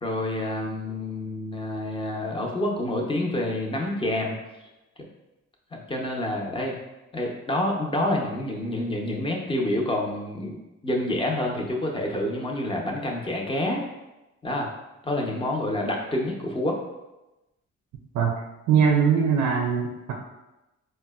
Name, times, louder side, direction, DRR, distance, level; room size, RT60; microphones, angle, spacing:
voice 1, 0.0-4.4 5.7-6.7 7.1-13.8 14.4-14.7 15.0-16.8, left 1 dB, 20° left, 0 dB, 0.6 m, -28 dB
voice 2, 18.7-20.1, right 6 dB, 75° right, 1 dB, 0.5 m, -21 dB
4.1 x 2.1 x 2.2 m, 1.0 s
cardioid pair, 90°, 30 cm